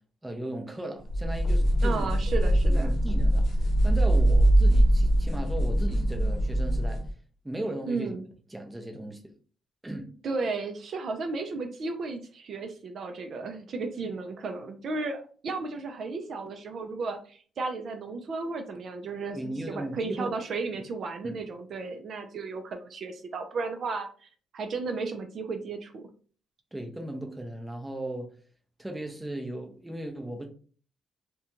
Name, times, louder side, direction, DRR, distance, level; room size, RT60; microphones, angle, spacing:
voice 1, 0.2-2.1 2.6-7.0 7.4-8.1 8.5-9.3 9.8-10.1 19.3-20.4 21.2-21.4 26.7-28.4 28.8-30.5, right 1 dB, 10° right, 0.6 m, -37 dB
sound 1, 1.1-7.1, right 1 dB, 60° left, 0.6 m, -22 dB
voice 2, 1.8-2.9 7.9-8.2 10.2-26.1, right 3 dB, 55° right, 0.4 m, -34 dB
2.5 x 2.2 x 2.9 m
cardioid pair, 90°, 0 cm